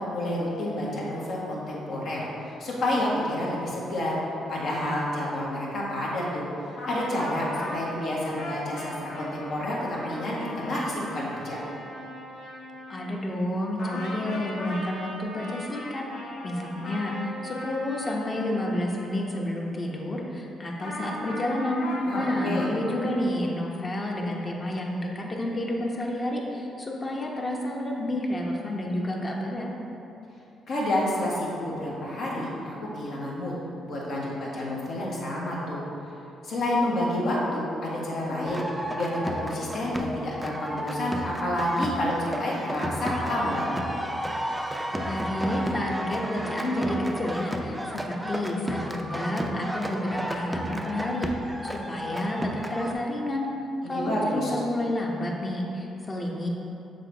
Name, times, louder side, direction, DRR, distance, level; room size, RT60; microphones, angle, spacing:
voice 1, 0.0-2.3 2.6-4.2 4.5-6.4 6.9-11.6 22.1-22.7 30.7-33.5 33.8-35.8 36.4-38.7 38.9-43.7 53.9-54.5, left 1 dB, 65° left, -5 dB, 1.4 m, -29 dB
sound 1, 6.8-13.5 13.8-19.7 20.8-23.2, left 1 dB, 85° left, 1.0 m, -38 dB
voice 2, 12.9-16.0 16.4-21.8 22.1-29.7 45.0-51.3 51.6-53.5 53.9-56.5, left 1 dB, 30° left, -1 dB, 0.9 m, -30 dB
sound 2, 38.4-52.9, equal, 5° right, 0.5 m, -32 dB
6.7 x 4.1 x 3.4 m, 2.9 s
cardioid pair, 90°, 0 cm